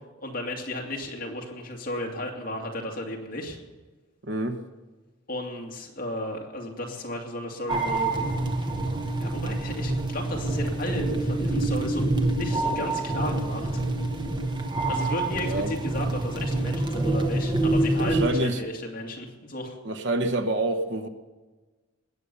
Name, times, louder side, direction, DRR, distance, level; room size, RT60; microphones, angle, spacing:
voice 1, 0.2-3.6 5.3-8.1 9.2-13.8 14.8-19.8, left 1 dB, 45° left, -1 dB, 2.4 m, -34 dB
voice 2, 4.2-4.6 15.4-15.7 18.0-18.7 19.8-21.1, right 2 dB, 60° right, 7 dB, 1.1 m, -27 dB
sound 1, 7.7-18.3, right 2 dB, 20° right, 1.1 m, -26 dB
20.0 x 8.4 x 6.9 m, 1.3 s
head